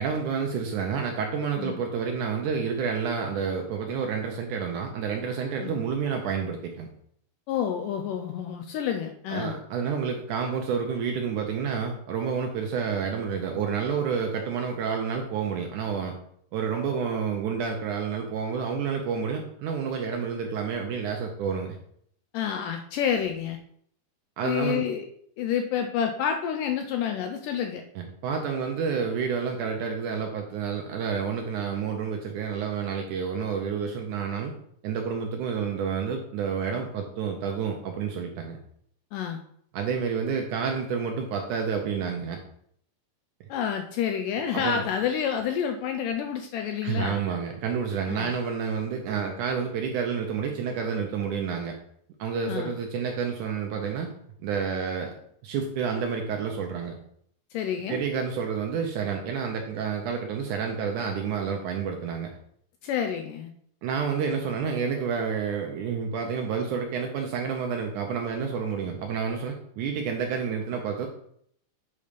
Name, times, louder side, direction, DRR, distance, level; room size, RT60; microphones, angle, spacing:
voice 1, 0.0-6.9 9.3-16.2 16.5-21.8 24.4-24.9 28.0-34.5 34.8-38.6 39.7-42.4 44.5-44.8 46.8-51.7 52.2-54.1 54.4-55.2 55.4-57.0 57.9-62.3 63.8-71.1, right 6 dB, 75° right, 2 dB, 1.9 m, -29 dB
voice 2, 7.5-9.6 22.3-23.6 24.4-25.1 25.4-27.8 39.1-39.4 43.5-47.2 48.1-48.3 52.5-52.7 57.5-58.0 62.8-63.5, left 8 dB, 80° left, 5 dB, 2.0 m, -29 dB
8.5 x 4.2 x 5.1 m, 0.66 s
omnidirectional pair, 4.3 m